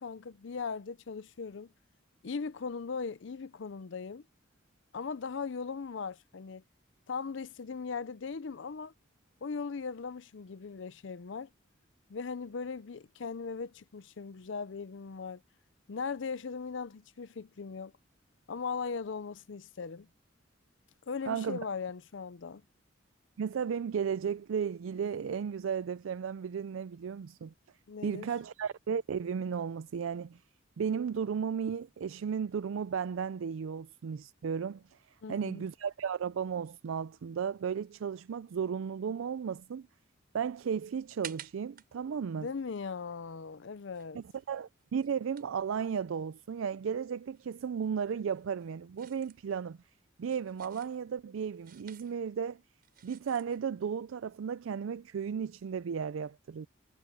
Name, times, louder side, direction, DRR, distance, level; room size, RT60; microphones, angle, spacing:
voice 1, 0.0-1.7 2.2-4.3 4.9-6.6 7.1-8.9 9.4-11.5 12.1-15.4 15.9-17.9 18.5-20.1 21.1-22.6 27.9-28.3 35.2-35.6 42.4-44.2, left 5 dB, 65° left, 0.5 m, -39 dB
voice 2, 21.3-21.6 23.4-27.5 28.0-30.4 30.8-34.8 35.3-39.9 40.3-42.5 44.1-49.8 50.2-52.6 53.0-56.7, right 7 dB, 80° right, 0.4 m, -34 dB
sound 1, 40.3-46.6 46.9-53.7, right 9 dB, 50° right, 5.7 m, -54 dB
head